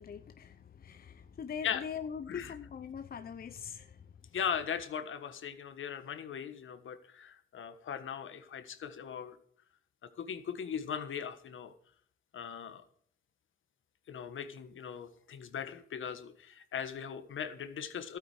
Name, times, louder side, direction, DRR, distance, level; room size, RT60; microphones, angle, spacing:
voice 1, 0.0-4.1, left 7 dB, 45° left, 10 dB, 0.7 m, -42 dB
voice 2, 4.3-9.4 10.2-11.7 12.3-12.8 14.1-18.2, left 8 dB, 70° left, 10 dB, 1.4 m, -39 dB
12.5 x 8.9 x 4.9 m, 0.62 s
cardioid pair, 70°, 21 cm